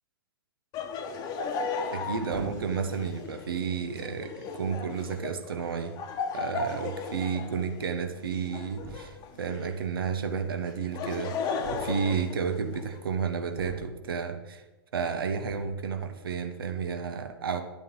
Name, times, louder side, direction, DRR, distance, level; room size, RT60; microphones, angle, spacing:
Laughter, 0.7-9.8 10.7-13.0, left 4 dB, 30° left, 1.2 m, -36 dB
voice 1, 1.9-5.9 6.3-14.6 14.9-17.6, right 6 dB, 65° right, 8 dB, 1.2 m, -32 dB
sound 1, 2.3-2.9 3.7-3.8 4.6-4.7 5.0-5.3 6.5-6.6 6.8-6.9 7.2-7.3 8.8-9.3 11.6-12.3 13.6-14.2 15.4-15.9, right 3 dB, 40° right, 3.4 m, -44 dB
10.5 x 8.9 x 4.0 m, 1.1 s
figure-of-eight pair, 105°, 13 cm